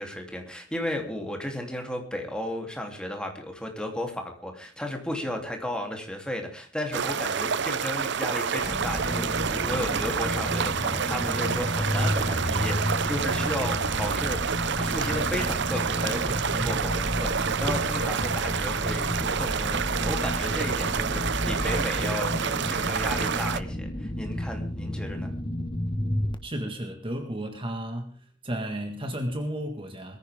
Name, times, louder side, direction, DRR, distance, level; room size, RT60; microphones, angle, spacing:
voice 1, 0.0-25.3, left 1 dB, 5° left, 3.2 m, -34 dB
sound 1, 6.9-23.6, right 6 dB, 65° right, 0.7 m, -28 dB
sound 2, 8.6-26.3, left 1 dB, 25° left, 1.4 m, -31 dB
voice 2, 26.4-28.2 28.4-30.2, equal, 30° right, 1.8 m, -33 dB
21.0 x 15.0 x 3.7 m
head